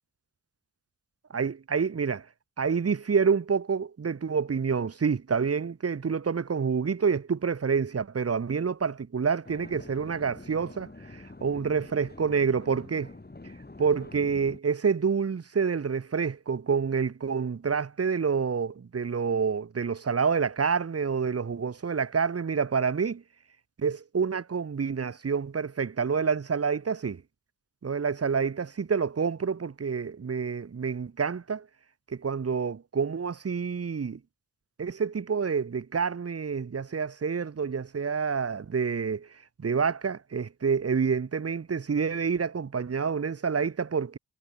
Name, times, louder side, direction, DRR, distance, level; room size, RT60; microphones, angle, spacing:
voice 1, 1.3-2.2 2.6-13.1 13.8-23.2 23.8-27.2 27.8-31.6 32.1-34.2 34.8-39.3 39.6-44.2, right 6 dB, 35° right, 1.3 m, -28 dB
sound 1, 9.4-14.6, left 2 dB, 25° left, 7.5 m, -46 dB
supercardioid pair, 40°, 40 cm